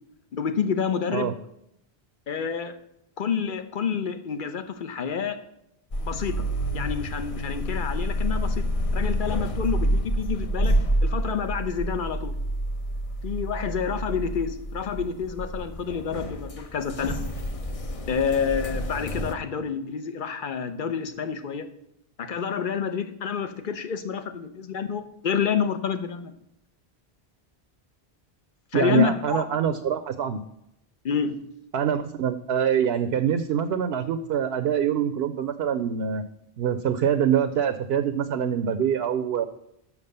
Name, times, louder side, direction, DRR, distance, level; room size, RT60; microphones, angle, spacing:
voice 1, 0.4-1.3 2.3-2.8 3.2-5.4 6.1-6.4 6.7-8.6 8.9-12.3 13.2-17.1 18.1-21.7 22.2-26.3 28.7-29.4 31.0-31.4, left 6 dB, 55° left, 9 dB, 1.0 m, -28 dB
sound 1, 5.9-19.3, equal, 40° left, 0.7 m, -28 dB
voice 2, 28.7-30.4 31.7-36.2 36.6-39.5, right 8 dB, 75° right, 10 dB, 0.8 m, -25 dB
7.2 x 6.1 x 6.6 m, 0.80 s
omnidirectional pair, 1.1 m